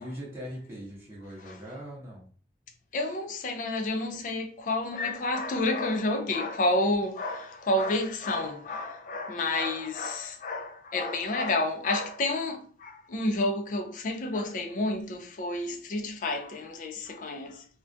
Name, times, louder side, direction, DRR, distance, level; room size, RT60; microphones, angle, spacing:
voice 1, 0.0-2.3, equal, 15° right, 0.7 m, -41 dB
voice 2, 2.9-17.7, left 2 dB, 45° left, 0.4 m, -30 dB
2.3 x 2.2 x 2.5 m
head